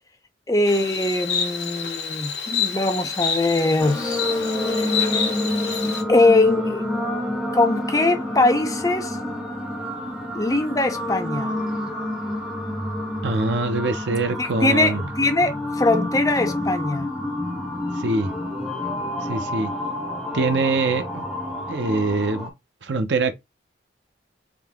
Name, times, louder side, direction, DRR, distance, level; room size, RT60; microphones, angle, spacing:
voice 1, 0.5-4.2 5.1-5.2 6.1-6.9 7.5-9.2 10.3-11.5 14.4-17.1, left 2 dB, 20° left, 0.6 m, -21 dB
Insect, 0.7-6.0, left 7 dB, 70° left, 1.0 m, -28 dB
sound 1, 3.8-22.5, left 1 dB, 5° right, 0.9 m, -28 dB
voice 2, 13.2-15.0 18.0-18.3 19.3-19.7 20.3-21.2 21.7-22.5 22.8-23.3, right 3 dB, 75° right, 0.6 m, -23 dB
3.7 x 2.7 x 3.5 m
head